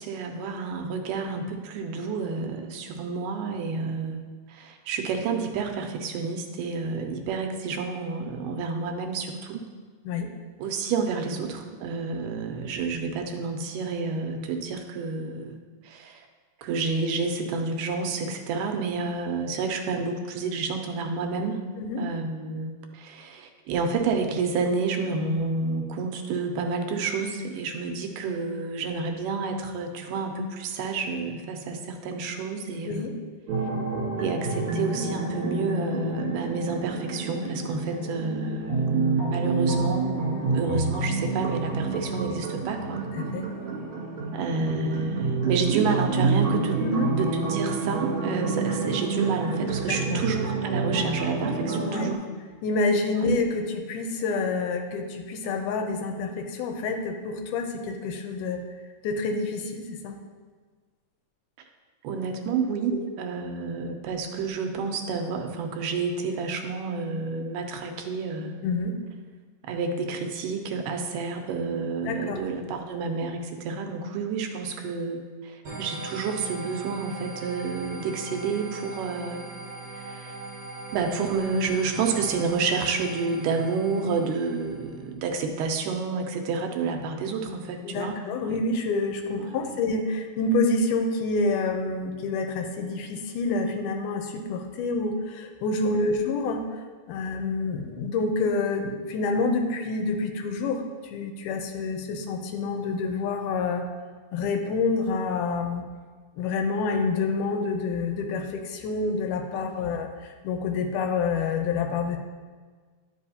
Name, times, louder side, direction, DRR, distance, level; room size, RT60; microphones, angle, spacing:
voice 1, 0.0-4.2 4.5-9.7 10.6-15.6 15.8-16.3 16.6-21.6 22.0-33.1 34.2-43.0 44.3-46.8 47.1-52.3 53.1-53.3 62.0-68.5 69.6-79.4 79.9-80.4 80.9-88.6 89.3-89.7 95.8-96.1 109.5-109.9, right 4 dB, 85° right, 4 dB, 2.2 m, -30 dB
sound 1, 33.5-52.2, right 4 dB, 40° right, 2.9 m, -28 dB
voice 2, 43.1-43.5 46.8-47.1 49.9-50.2 51.8-52.1 52.6-58.6 59.0-60.2 62.9-63.0 68.6-69.0 72.1-72.4 87.8-96.6 97.1-103.8 104.3-105.8 106.4-112.2, left 3 dB, 80° left, 4 dB, 2.2 m, -28 dB
sound 2, 75.6-85.0, right 2 dB, 60° right, 2.1 m, -40 dB
10.5 x 5.1 x 2.7 m, 1.5 s
omnidirectional pair, 3.7 m